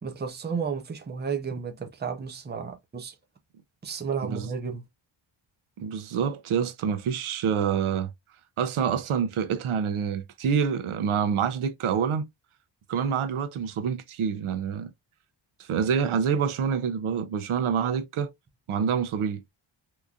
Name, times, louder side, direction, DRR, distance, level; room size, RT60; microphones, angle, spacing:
voice 1, 0.0-3.2 3.8-4.8, right 6 dB, 20° right, 0.5 m, -32 dB
voice 2, 5.8-8.1 8.6-12.3 12.9-14.9 15.6-18.3 18.7-19.4, right 7 dB, 80° right, 0.7 m, -27 dB
3.8 x 2.9 x 2.3 m
wide cardioid pair, 180°, 49 cm